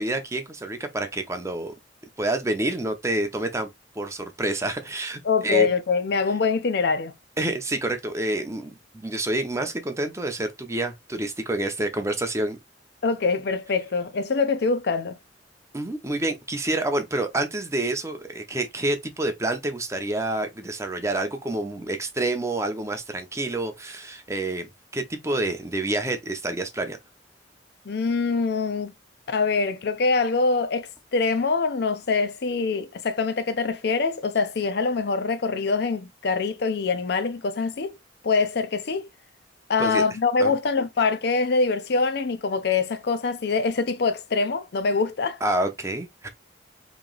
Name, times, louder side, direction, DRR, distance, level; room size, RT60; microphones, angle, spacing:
voice 1, 0.0-1.7 2.2-3.7 3.9-5.7 7.4-12.6 15.7-27.0 39.8-40.0 40.4-40.5 45.4-46.3, right 2 dB, 15° right, 0.6 m, -28 dB
voice 2, 5.2-7.1 13.0-15.2 27.9-28.9 29.3-38.0 38.2-39.1 39.7-45.4, left 4 dB, 60° left, 0.5 m, -24 dB
3.1 x 2.8 x 3.9 m
head